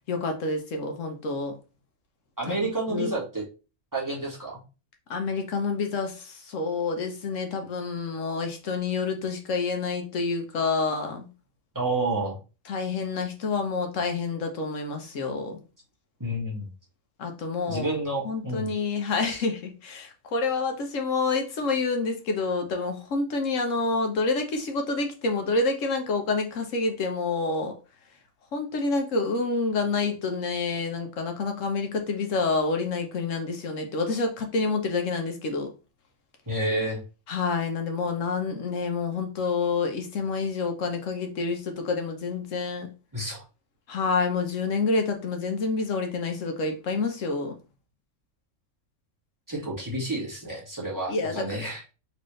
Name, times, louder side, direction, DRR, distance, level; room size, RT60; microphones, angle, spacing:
voice 1, 0.1-1.5 2.5-3.1 5.1-11.3 12.7-15.6 17.2-17.9 18.2-27.7 28.5-35.7 37.3-42.9 43.9-47.5 51.1-51.7, left 4 dB, 65° left, 1.2 m, -28 dB
voice 2, 2.4-3.4 3.9-4.6 11.7-12.4 16.2-16.7 17.7-18.7 19.3-19.4 36.5-37.0 43.1-43.4 49.5-51.8, right 2 dB, 15° right, 1.6 m, -29 dB
4.3 x 3.3 x 3.1 m
omnidirectional pair, 1.4 m